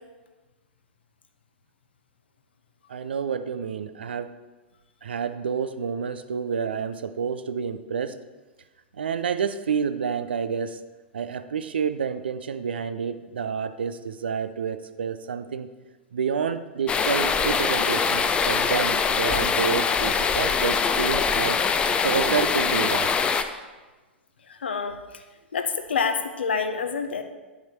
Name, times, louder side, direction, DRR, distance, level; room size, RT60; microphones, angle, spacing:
voice 1, 2.9-4.3 5.0-8.1 9.0-10.8 11.1-15.7 16.1-21.6 22.0-23.1, right 6 dB, 65° right, 11 dB, 0.5 m, -29 dB
sound 1, 16.9-23.4, left 5 dB, 15° left, 0.5 m, -23 dB
voice 2, 24.6-24.9 25.5-27.2, left 5 dB, 65° left, 7 dB, 0.8 m, -27 dB
10.5 x 5.8 x 4.4 m, 1.2 s
figure-of-eight pair, 95°, 6 cm